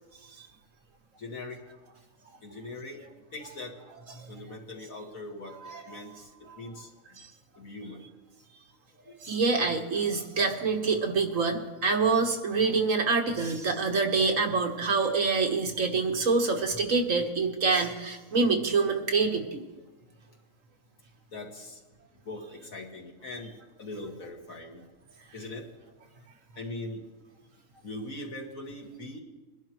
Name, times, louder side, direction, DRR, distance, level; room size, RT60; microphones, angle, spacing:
voice 1, 1.2-1.6 2.4-3.0 3.3-5.5 5.9-6.1 6.4-6.9 7.6-8.0 9.0-9.1 21.3-21.8 22.2-24.8 25.3-25.7 26.6-27.0 27.8-29.2, left 2 dB, 70° left, 0 dB, 2.3 m, -41 dB
voice 2, 5.6-6.0 7.2-7.3 9.2-19.6, right 4 dB, 65° right, 3 dB, 1.6 m, -26 dB
22.5 x 11.5 x 3.0 m, 1.1 s
omnidirectional pair, 1.5 m